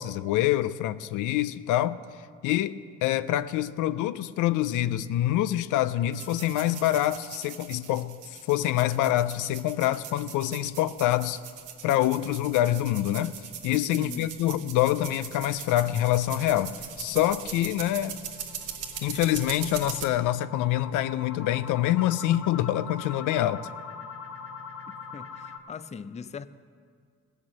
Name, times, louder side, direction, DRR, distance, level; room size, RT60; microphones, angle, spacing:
voice 1, 0.0-2.0 2.4-8.2 8.5-11.4 11.8-13.3 13.6-18.2 19.0-23.7, left 13 dB, 90° left, 0.5 m, -26 dB
sound 1, 6.0-7.4 7.8-7.9 8.3-8.4 8.9-9.0 13.8-25.6, left 5 dB, 45° left, 1.2 m, -44 dB
sound 2, 6.1-20.1, right 8 dB, 80° right, 1.3 m, -41 dB
voice 2, 13.9-14.3 25.1-26.5, left 6 dB, 25° left, 0.4 m, -40 dB
17.0 x 6.6 x 7.4 m
cardioid pair, 90°, 30 cm